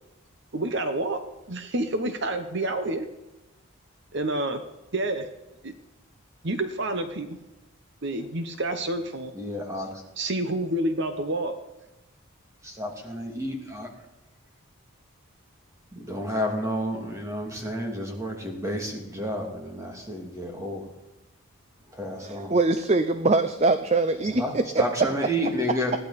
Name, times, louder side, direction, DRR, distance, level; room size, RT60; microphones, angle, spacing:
voice 1, 0.5-3.1 4.1-4.6 4.9-5.3 5.6-5.7 6.4-7.4 8.0-9.3 10.2-11.6, right 1 dB, 55° right, 8 dB, 1.0 m, -28 dB
voice 2, 9.3-10.0 12.6-13.9 15.9-20.9 21.9-22.6 24.2-25.9, equal, 15° right, 1 dB, 2.6 m, -31 dB
voice 3, 22.2-24.8, right 3 dB, 30° right, 10 dB, 0.6 m, -23 dB
20.5 x 15.0 x 4.2 m, 1.0 s
head